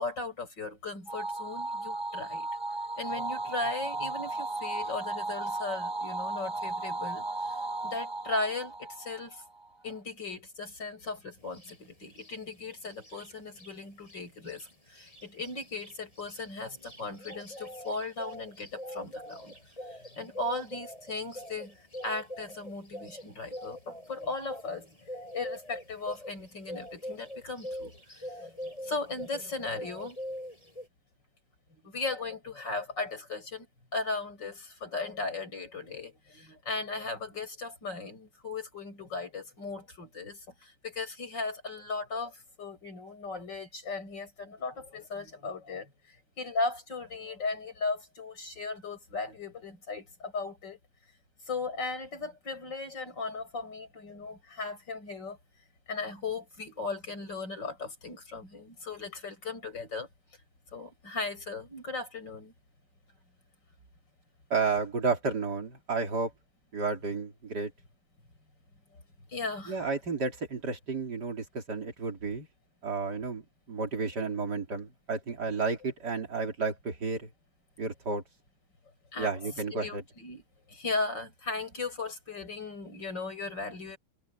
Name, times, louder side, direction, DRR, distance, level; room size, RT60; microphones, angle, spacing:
voice 1, 0.0-2.5 3.0-9.4 9.8-19.6 19.9-21.8 22.0-25.1 25.3-30.2 31.7-33.7 33.9-50.8 51.5-55.4 55.9-60.1 60.7-62.5 69.3-69.9 79.1-80.4 80.7-84.0, left 3 dB, 80° left, 7.9 m, -37 dB
sound 1, 1.1-9.7, right 2 dB, 15° right, 4.1 m, -35 dB
sound 2, 11.5-11.8 12.1-13.7 14.0-14.2 14.4-29.5 29.7-30.9, equal, 20° left, 5.9 m, -43 dB
voice 2, 64.5-66.3 66.7-67.7 69.7-72.5 72.8-73.4 73.7-77.3 77.8-78.2 79.2-80.0, right 4 dB, 65° right, 3.9 m, -32 dB
omnidirectional pair, 1.9 m